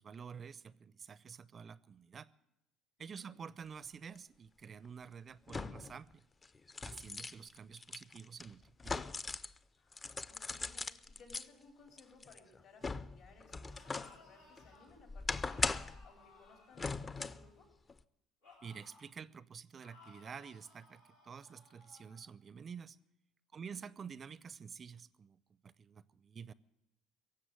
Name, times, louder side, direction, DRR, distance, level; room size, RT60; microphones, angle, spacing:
voice 1, 0.0-2.3 3.0-6.2 6.8-9.1 18.6-23.0 23.5-26.5, right 6 dB, 40° right, 0.4 m, -49 dB
voice 2, 3.0-3.3 9.8-17.7 23.5-23.8, left 4 dB, 65° left, 4.4 m, -62 dB
sound 1, 4.2-4.3 5.5-6.0 6.4-9.6 9.9-11.5 12.0-14.2 14.6-16.1 16.8-17.5 17.9-18.0, left 3 dB, 25° left, 0.5 m, -40 dB
sound 2, 13.5-14.9 15.4-17.7 18.4-19.1 19.8-22.3, left 3 dB, 85° left, 3.3 m, -62 dB
17.0 x 7.6 x 9.4 m
hypercardioid pair, 65°, 0 cm